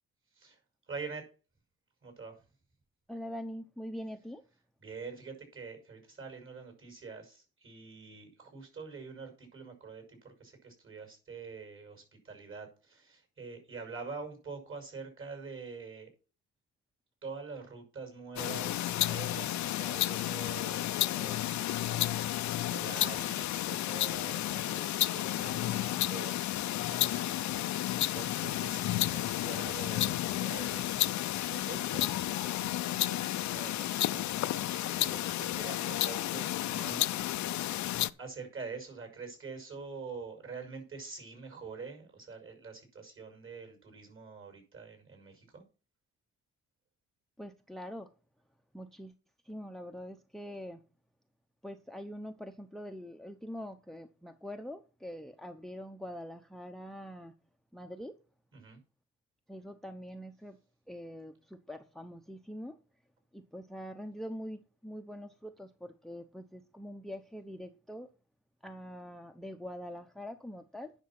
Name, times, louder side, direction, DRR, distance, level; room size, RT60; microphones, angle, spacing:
voice 1, 0.9-1.3 2.0-2.4 4.8-16.1 17.2-27.8 28.1-37.4 38.2-45.6 58.5-58.8, right 4 dB, 45° right, 5.9 m, -46 dB
voice 2, 3.1-4.4 47.4-48.1 48.7-49.1 49.4-50.8 51.6-57.3 57.7-58.2 59.5-60.6 60.9-62.8 63.3-68.1 68.6-70.9, equal, ahead, 0.9 m, -44 dB
sound 1, 18.4-38.1, left 14 dB, 70° left, 0.6 m, -32 dB
10.0 x 6.0 x 5.9 m
cardioid pair, 90°, 30 cm